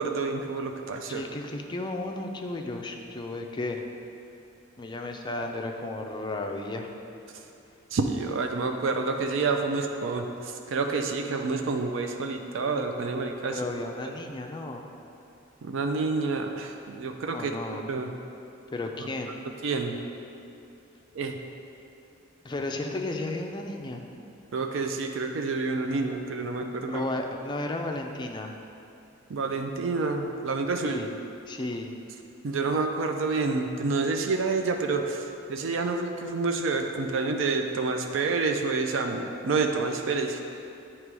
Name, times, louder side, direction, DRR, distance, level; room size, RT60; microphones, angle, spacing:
voice 1, 0.0-1.3 7.3-7.4 7.9-13.6 14.0-14.1 15.6-18.1 19.0-19.1 19.6-20.0 21.1-21.4 24.5-27.0 29.3-31.0 32.4-40.4, right 3 dB, 65° right, 4 dB, 0.4 m, -28 dB
voice 2, 1.1-3.8 4.8-6.9 13.5-14.8 17.3-17.8 18.7-19.4 22.4-24.0 26.9-28.5 30.8-31.1 31.5-31.9, left 2 dB, 20° left, 3 dB, 0.4 m, -33 dB
8.8 x 3.0 x 4.7 m, 2.7 s
head